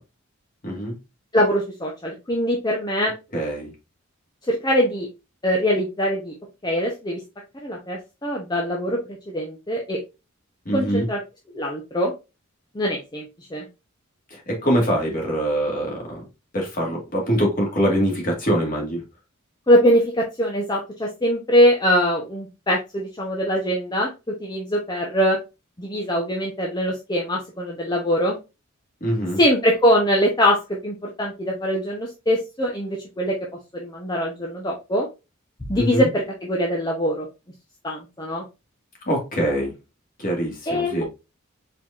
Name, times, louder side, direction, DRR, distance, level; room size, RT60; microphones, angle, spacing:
voice 1, 0.6-0.9 3.3-3.7 10.7-11.1 14.3-16.2 16.5-19.0 29.0-29.4 35.8-36.1 39.1-39.7 40.2-41.0, equal, 40° left, 1.9 m, -23 dB
voice 2, 1.3-3.1 4.5-5.1 5.4-6.3 6.6-7.2 7.6-10.0 10.7-11.2 11.5-12.1 12.7-13.2 13.5-13.7 19.7-25.4 25.8-28.4 29.4-33.4 33.7-35.1 35.7-37.3 37.8-38.5 40.7-41.0, equal, 20° left, 0.8 m, -22 dB
4.5 x 4.0 x 2.4 m
head